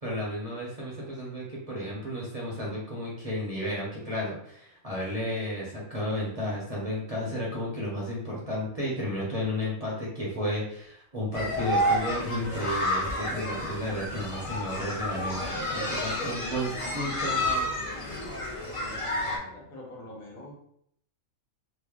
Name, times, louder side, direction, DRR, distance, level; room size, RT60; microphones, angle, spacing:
voice 1, 0.0-17.7, equal, 35° right, -6 dB, 0.7 m, -33 dB
sound 1, 11.3-19.4, left 1 dB, 35° left, 0.5 m, -30 dB
voice 2, 18.7-20.6, left 1 dB, 85° left, -2 dB, 1.5 m, -45 dB
3.2 x 2.1 x 3.5 m, 0.69 s
omnidirectional pair, 1.4 m